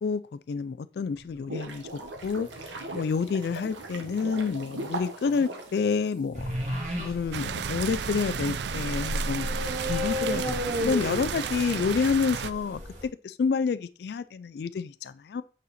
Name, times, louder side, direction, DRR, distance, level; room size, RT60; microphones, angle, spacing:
voice 1, 0.0-1.9 2.2-2.5 2.9-6.6 7.0-12.8 13.2-15.4, left 5 dB, 60° left, 0.3 m, -29 dB
sound 1, 1.1-6.5, right 2 dB, 85° right, 1.3 m, -39 dB
sound 2, 6.3-13.0, equal, 40° right, 2.0 m, -33 dB
sound 3, 7.3-12.5, right 7 dB, 70° right, 0.4 m, -33 dB
8.3 x 4.1 x 4.2 m
head